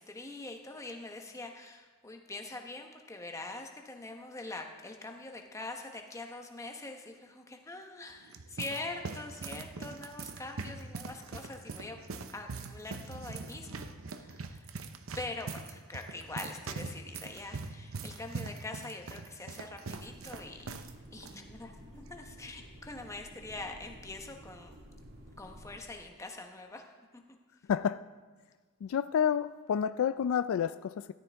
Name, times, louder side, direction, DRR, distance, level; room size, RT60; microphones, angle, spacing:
voice 1, 0.0-14.7 15.1-24.8 25.4-26.8 27.1-27.2, left 2 dB, 15° left, 3 dB, 1.0 m, -44 dB
sound 1, 8.0-20.9 21.2-21.3 22.1-22.4, right 4 dB, 75° right, 0.7 m, -42 dB
sound 2, 19.9-25.8, equal, 55° right, 2.1 m, -52 dB
voice 2, 28.8-31.1, left 8 dB, 75° left, 13 dB, 0.3 m, -29 dB
13.5 x 11.5 x 3.5 m, 1.4 s
head